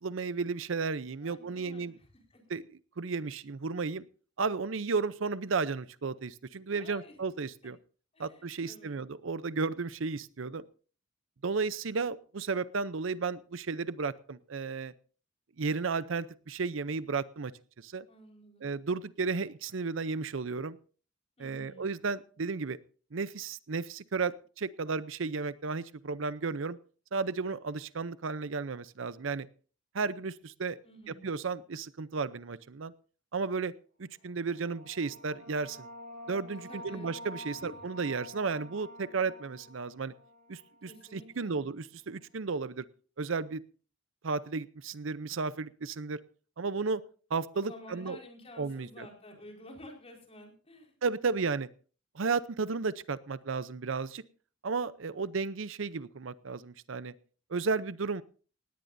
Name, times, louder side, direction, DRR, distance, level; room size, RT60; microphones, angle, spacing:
voice 1, 0.0-1.9 2.5-2.6 3.0-4.1 4.4-7.8 8.2-10.6 11.4-14.9 15.6-17.5 17.8-18.1 18.6-20.8 21.4-22.8 23.1-26.8 27.1-29.5 29.9-30.8 31.1-32.9 33.3-33.7 34.0-35.9 36.3-40.1 40.5-42.8 43.2-43.6 44.2-46.2 46.6-47.0 47.3-48.2 48.6-49.1 51.0-51.7 52.1-54.2 54.6-57.1 57.5-58.2, right 4 dB, 70° right, 16 dB, 0.6 m, -33 dB
voice 2, 1.2-2.4 6.8-7.2 7.6-7.7 8.1-9.0 18.1-18.7 21.4-21.9 30.8-31.3 36.7-37.1 37.5-37.8 40.9-41.7 47.5-50.9, left 1 dB, 30° left, 1 dB, 4.9 m, -51 dB
sound 1, 34.2-41.5, equal, 40° right, 6.9 m, -49 dB
18.0 x 18.0 x 2.7 m, 0.40 s
head